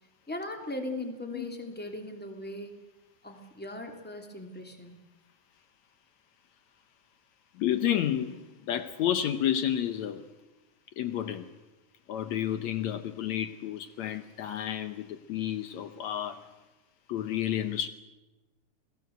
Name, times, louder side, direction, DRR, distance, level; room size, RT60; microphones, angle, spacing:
voice 1, 0.3-2.8 3.2-4.9, left 1 dB, 5° left, 4 dB, 2.6 m, -38 dB
voice 2, 7.6-10.3 11.0-11.5 12.1-16.5 17.1-17.9, left 10 dB, 70° left, 10 dB, 2.2 m, -31 dB
28.5 x 18.5 x 8.0 m, 1.1 s
omnidirectional pair, 3.5 m